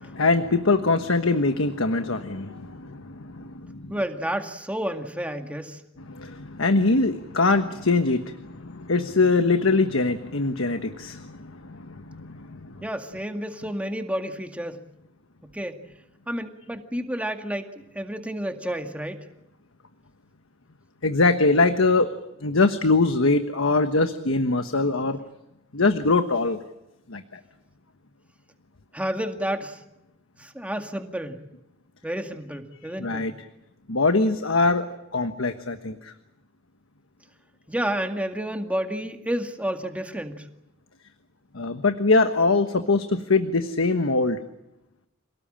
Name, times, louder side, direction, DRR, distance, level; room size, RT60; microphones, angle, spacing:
voice 1, 0.0-3.9 6.0-12.8 21.0-22.1 22.4-25.2 25.7-26.6 27.1-27.4 33.0-33.3 33.9-34.9 35.1-36.1 41.5-44.4, left 3 dB, 75° left, 8 dB, 1.3 m, -23 dB
voice 2, 3.9-5.8 12.8-14.8 15.5-15.8 16.3-17.7 17.9-19.2 28.9-29.8 30.4-31.4 32.0-33.3 37.7-40.5, equal, 5° right, 5 dB, 2.1 m, -30 dB
27.5 x 18.5 x 8.8 m, 0.92 s
head